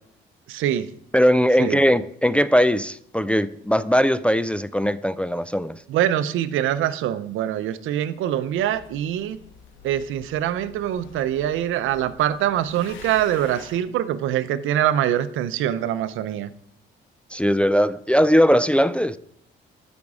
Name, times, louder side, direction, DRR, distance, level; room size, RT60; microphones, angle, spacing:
voice 1, 0.5-0.9 1.6-1.8 5.9-9.4 9.8-16.5, right 11 dB, 85° right, 0.6 m, -24 dB
voice 2, 1.1-5.8 17.3-19.2, equal, 5° left, 0.3 m, -19 dB
sound 1, 8.5-13.8, left 6 dB, 75° left, 1.2 m, -47 dB
12.0 x 5.2 x 4.8 m
cardioid pair, 90°, 20 cm